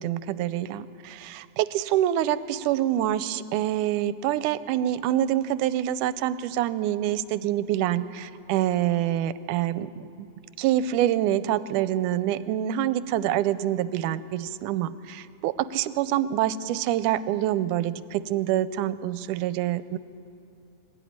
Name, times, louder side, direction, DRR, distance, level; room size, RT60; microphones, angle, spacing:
voice 1, 0.0-10.3 10.6-20.0, right 12 dB, 85° right, 15 dB, 2.1 m, -26 dB
25.0 x 13.5 x 9.4 m, 2.7 s
omnidirectional pair, 3.5 m